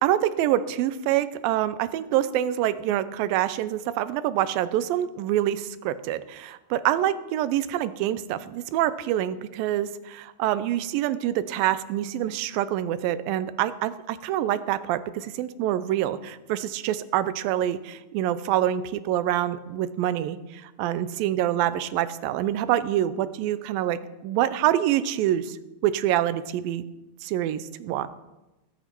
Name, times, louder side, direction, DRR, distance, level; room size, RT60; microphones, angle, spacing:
voice 1, 0.0-25.6 25.8-26.8 27.2-28.1, right 12 dB, 90° right, 14 dB, 2.4 m, -26 dB
19.5 x 8.5 x 4.5 m, 1.0 s
omnidirectional pair, 4.0 m